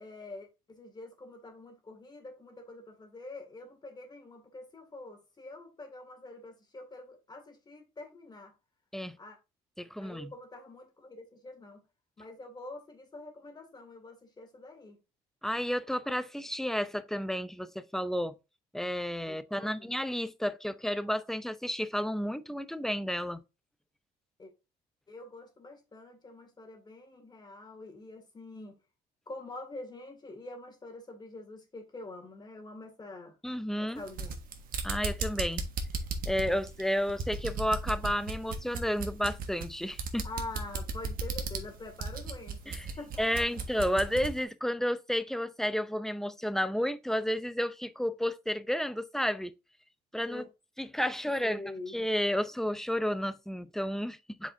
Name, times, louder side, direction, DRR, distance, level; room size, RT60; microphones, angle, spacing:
voice 1, 0.0-8.5 9.2-9.4 10.0-11.8 12.2-15.0 19.2-19.9 24.4-24.5 25.1-28.8 29.3-33.4 33.8-34.3 40.2-43.5 50.3-50.5 51.4-51.9, left 2 dB, 25° left, 2.1 m, -46 dB
voice 2, 9.8-10.3 15.4-18.3 18.7-23.4 33.4-34.0 34.8-35.7 36.3-40.3 42.7-42.9 43.2-49.5 50.1-50.5 50.8-51.6 51.9-54.5, equal, ahead, 0.4 m, -31 dB
sound 1, 34.0-44.4, right 4 dB, 60° right, 1.4 m, -36 dB
7.5 x 5.0 x 2.6 m
cardioid pair, 110°, 17 cm